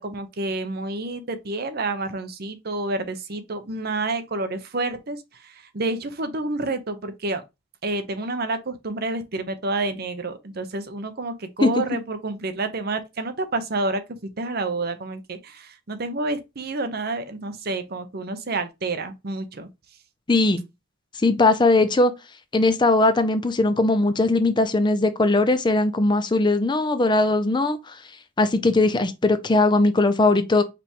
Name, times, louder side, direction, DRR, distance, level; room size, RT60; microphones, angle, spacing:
voice 1, 0.0-7.4 7.8-14.0 14.4-19.7, right 2 dB, 50° right, 0.8 m, -29 dB
voice 2, 20.3-20.6 21.2-22.1 22.5-28.0 28.4-30.6, left 2 dB, 25° left, 0.5 m, -19 dB
5.0 x 3.4 x 2.9 m
head